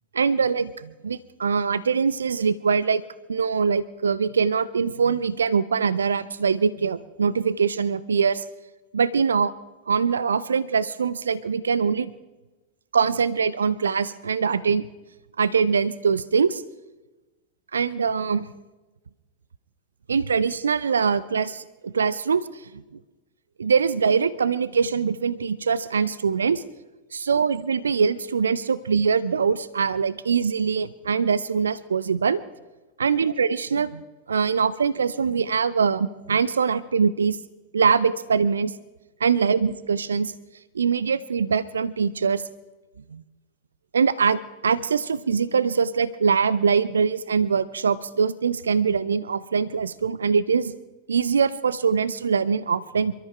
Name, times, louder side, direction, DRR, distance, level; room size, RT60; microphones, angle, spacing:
voice 1, 0.1-3.0 3.3-8.4 8.9-9.5 9.9-12.1 12.9-14.8 15.4-16.6 17.7-18.5 20.1-22.4 23.6-26.6 27.1-32.4 33.0-34.0 34.3-37.4 37.7-38.7 39.2-40.3 40.8-42.4 43.1-43.2 43.9-44.4 44.6-50.7 51.1-53.1, right 6 dB, 70° right, 19 dB, 0.5 m, -23 dB
27.5 x 13.5 x 3.4 m, 1.1 s
figure-of-eight pair, 90°, 0 cm